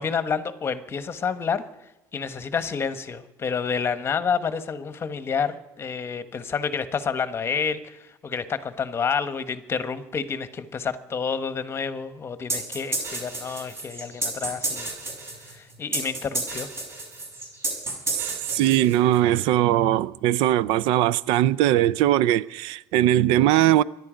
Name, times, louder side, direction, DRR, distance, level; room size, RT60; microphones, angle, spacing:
voice 1, 0.0-1.6 2.1-14.9 15.5-16.7, left 6 dB, 30° left, 1.2 m, -29 dB
sound 1, 12.5-19.2, right 2 dB, 30° right, 6.2 m, -31 dB
voice 2, 18.1-23.8, right 13 dB, 75° right, 0.5 m, -20 dB
24.5 x 11.0 x 5.1 m
cardioid pair, 125°, 9 cm